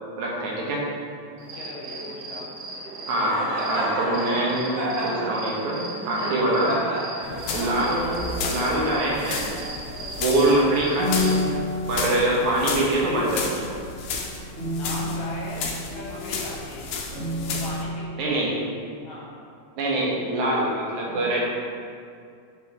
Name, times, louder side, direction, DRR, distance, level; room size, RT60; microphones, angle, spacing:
voice 1, 0.2-0.8 3.1-3.4 3.7-6.8 7.5-9.5 10.2-11.3 11.9-13.6 18.2-18.5 19.8-21.4, right 1 dB, 85° right, -4 dB, 2.5 m, -24 dB
Cricket, 1.4-11.4, right 1 dB, 65° right, 1.7 m, -32 dB
voice 2, 1.5-2.5 14.7-16.9 17.4-18.5 19.0-19.3, left 2 dB, 65° left, -6 dB, 1.8 m, -38 dB
sound 1, 7.2-17.8, left 4 dB, 85° left, 1.2 m, -33 dB
sound 2, 10.8-16.5 17.1-18.3, left 1 dB, 40° right, 0.8 m, -30 dB
5.4 x 4.4 x 4.8 m, 2.3 s
omnidirectional pair, 3.3 m